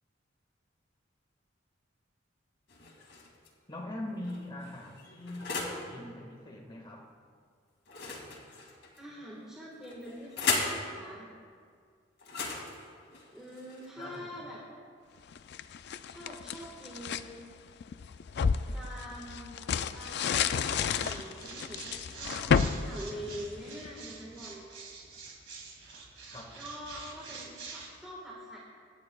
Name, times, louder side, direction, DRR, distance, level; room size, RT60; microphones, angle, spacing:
sound 1, 2.7-3.5 4.2-5.9 7.9-9.0 9.8-10.8 12.2-14.2, left 4 dB, 85° left, 2.1 m, -36 dB
voice 1, 3.7-7.1 14.0-14.5 26.3-26.6, left 1 dB, 25° left, 0 dB, 1.6 m, -42 dB
voice 2, 9.0-11.3 13.3-14.6 16.1-17.5 18.7-22.5 22.8-24.7 26.5-28.6, equal, 5° right, -6 dB, 1.5 m, -45 dB
sound 2, 15.3-17.3 17.8-23.9, left 6 dB, 60° left, 0.4 m, -31 dB
sound 3, 19.7-27.9, right 4 dB, 70° right, 2.3 m, -47 dB
25.5 x 9.7 x 2.3 m, 2.1 s
head